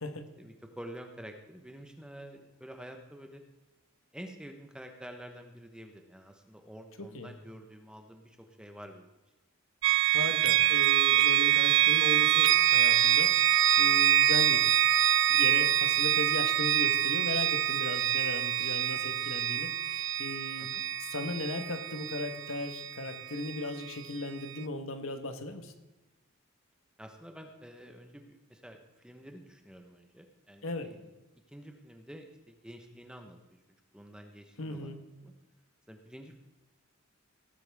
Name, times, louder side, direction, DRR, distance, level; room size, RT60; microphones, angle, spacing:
voice 1, 0.4-3.4 4.1-9.1 20.6-20.8 27.0-31.1 31.5-33.4 33.9-34.9 35.2-35.3 35.9-36.3, equal, 5° right, 4 dB, 1.1 m, -48 dB
voice 2, 7.0-7.3 10.1-13.3 13.8-14.6 15.3-20.7 21.0-25.7 30.6-30.9 34.6-35.0, left 2 dB, 75° left, 7 dB, 1.4 m, -37 dB
sound 1, 9.8-23.6, right 12 dB, 60° right, 0.4 m, -25 dB
18.0 x 8.9 x 3.6 m, 1.1 s
head